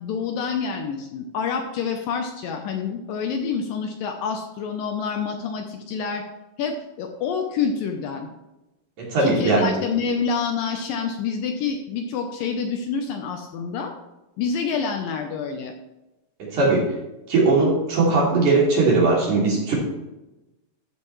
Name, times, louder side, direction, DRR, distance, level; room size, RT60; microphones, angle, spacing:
voice 1, 0.0-6.3 6.6-8.3 9.2-13.9 14.4-15.7, left 6 dB, 75° left, 4 dB, 2.3 m, -27 dB
voice 2, 9.0-9.7 16.4-16.9 17.3-19.7, right 3 dB, 50° right, -4 dB, 4.1 m, -19 dB
14.0 x 7.5 x 3.2 m, 0.98 s
omnidirectional pair, 4.5 m